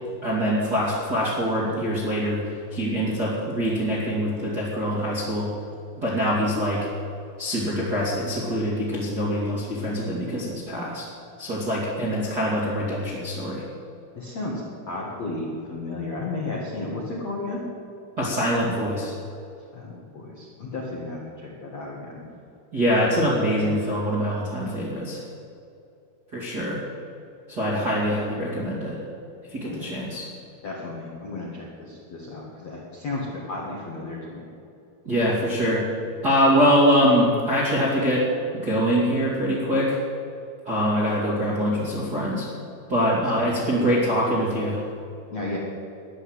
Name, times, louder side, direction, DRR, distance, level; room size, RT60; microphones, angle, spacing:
voice 1, 0.2-5.5 6.0-6.9 7.4-11.1 11.4-13.6 18.2-19.1 22.7-25.2 26.3-26.8 27.5-29.0 29.5-30.3 35.0-35.8 36.2-38.3 38.5-40.0 40.6-42.5 42.9-44.8, equal, 35° right, -6 dB, 1.7 m, -24 dB
voice 2, 14.2-17.6 19.7-22.4 29.6-29.9 30.6-34.4 43.3-43.4 45.3-45.6, left 2 dB, 55° left, -4 dB, 1.9 m, -33 dB
13.5 x 11.0 x 8.0 m, 2.5 s
omnidirectional pair, 5.9 m